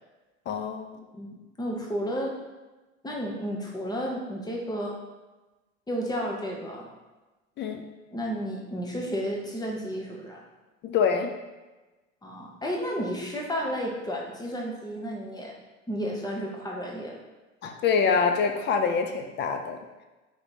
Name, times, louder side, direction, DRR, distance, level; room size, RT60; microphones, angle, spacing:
voice 1, 0.5-1.1 7.6-7.8 10.8-11.3 17.6-19.8, left 5 dB, 30° left, 5 dB, 0.4 m, -25 dB
voice 2, 1.6-2.4 3.0-5.0 5.9-6.9 8.1-10.4 12.2-15.5 15.9-17.2, equal, 10° left, -2 dB, 0.9 m, -32 dB
3.5 x 3.0 x 4.1 m, 1.1 s
hypercardioid pair, 80°, 39 cm